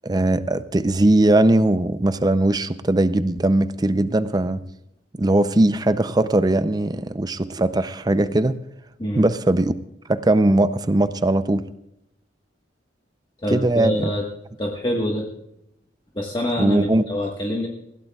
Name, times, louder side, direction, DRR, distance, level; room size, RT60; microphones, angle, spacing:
voice 1, 0.0-4.6 5.2-8.6 9.1-9.7 10.1-11.6 13.5-14.1 16.6-17.0, right 1 dB, 20° right, 12 dB, 0.5 m, -19 dB
voice 2, 13.4-14.2 14.6-15.3 16.1-17.7, equal, 25° left, -1 dB, 1.4 m, -25 dB
20.0 x 16.0 x 2.4 m, 0.83 s
head